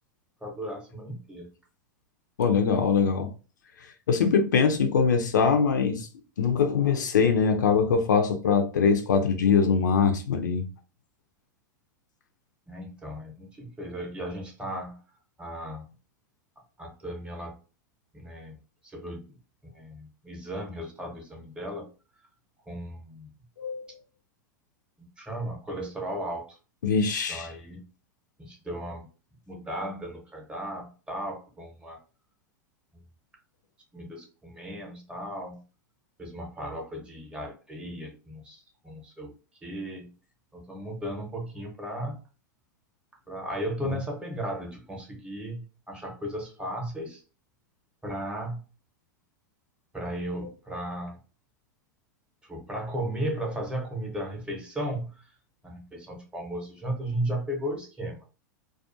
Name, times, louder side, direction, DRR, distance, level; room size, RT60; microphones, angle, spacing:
voice 1, 0.4-1.5 12.7-15.0 15.4-15.9 16.8-17.6 18.1-18.5 18.8-19.4 19.7-21.9 22.7-23.3 25.0-26.6 27.3-27.9 28.4-29.1 29.5-32.0 33.9-35.6 36.2-39.3 39.6-40.1 40.5-42.2 43.3-47.2 48.0-48.6 49.9-51.2 52.5-55.3 55.6-58.2, right 1 dB, 10° right, 0.8 m, -35 dB
voice 2, 2.4-3.3 4.1-6.1 6.4-10.6 23.6-23.8 26.8-27.5 43.8-43.9, left 6 dB, 75° left, 0.4 m, -23 dB
2.3 x 2.3 x 2.5 m
figure-of-eight pair, 95°, 10 cm